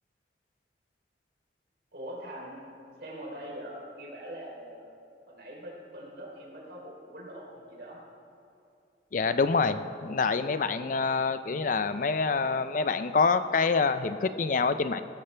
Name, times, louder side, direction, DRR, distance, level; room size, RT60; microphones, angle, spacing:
voice 1, 1.9-2.6 3.0-4.9 5.3-8.0, equal, 60° right, -2 dB, 3.5 m, -42 dB
voice 2, 9.1-15.0, left 4 dB, 45° left, 12 dB, 0.4 m, -26 dB
18.5 x 13.5 x 3.3 m, 2.5 s
head